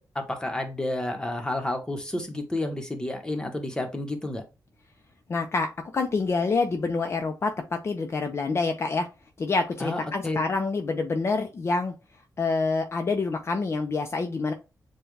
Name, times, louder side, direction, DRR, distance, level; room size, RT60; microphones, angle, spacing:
voice 1, 0.0-4.4 9.8-10.4, left 1 dB, 10° left, 1.1 m, -30 dB
voice 2, 5.3-5.7 5.9-9.1 9.4-11.9 12.4-14.5, left 4 dB, 40° left, 0.6 m, -27 dB
6.9 x 2.3 x 3.2 m
wide cardioid pair, 135°, 7 cm